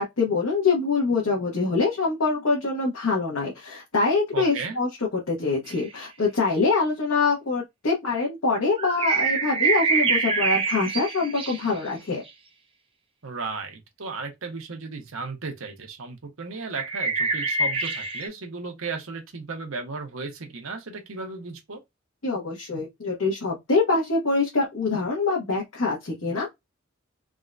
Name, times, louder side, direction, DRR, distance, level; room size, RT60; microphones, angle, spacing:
voice 1, 0.0-12.2 22.2-26.5, left 3 dB, 80° left, 1.0 m, -24 dB
voice 2, 4.3-4.8 13.2-21.8, right 4 dB, 75° right, 0.9 m, -35 dB
sound 1, 5.7-5.8 8.8-11.8 16.8-18.3, right 4 dB, 25° right, 0.4 m, -25 dB
3.5 x 2.2 x 2.4 m
head